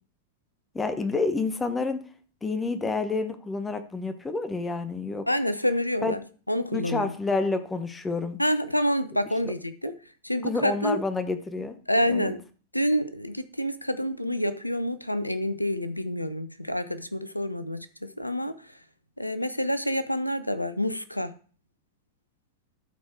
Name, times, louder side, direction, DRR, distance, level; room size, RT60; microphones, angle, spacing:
voice 1, 0.7-2.0 2.4-5.2 6.0-6.2 6.7-8.4 9.4-9.5 10.4-11.8 12.1-12.3, left 3 dB, 15° left, 9 dB, 1.1 m, -29 dB
voice 2, 5.3-6.2 6.5-7.2 8.4-9.9 10.2-11.0 11.9-12.4 12.7-18.6 19.2-21.3, equal, 85° left, 13 dB, 0.7 m, -27 dB
12.5 x 4.5 x 4.6 m, 0.39 s
figure-of-eight pair, 90°, 0 cm